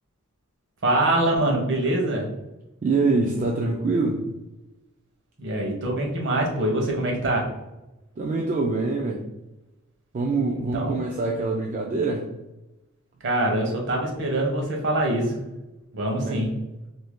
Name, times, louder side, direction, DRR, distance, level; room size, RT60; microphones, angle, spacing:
voice 1, 0.8-2.3 5.4-7.5 10.5-11.0 13.2-15.4 15.9-16.5, right 1 dB, 60° right, 0 dB, 0.9 m, -24 dB
voice 2, 2.8-4.2 8.2-9.2 10.1-12.3 16.2-16.5, right 3 dB, 35° right, -1 dB, 0.3 m, -25 dB
2.7 x 2.6 x 3.5 m, 0.98 s
head